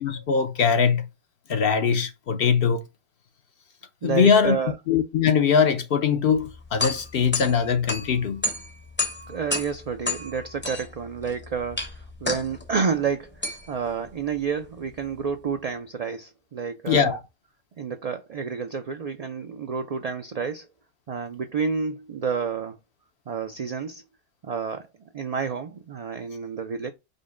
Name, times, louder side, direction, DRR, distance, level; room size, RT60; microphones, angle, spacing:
voice 1, 0.0-1.1 1.5-2.8 4.0-4.6 4.9-8.4 16.9-17.2, left 6 dB, 65° left, 0.8 m, -21 dB
voice 2, 4.0-4.8 9.3-17.2 17.8-20.7 21.1-22.8 23.3-24.0 24.4-24.9 25.1-26.9, right 6 dB, 50° right, 0.5 m, -29 dB
sound 1, 6.3-15.5, left 2 dB, 15° left, 0.6 m, -33 dB
5.3 x 2.1 x 3.7 m
omnidirectional pair, 1.1 m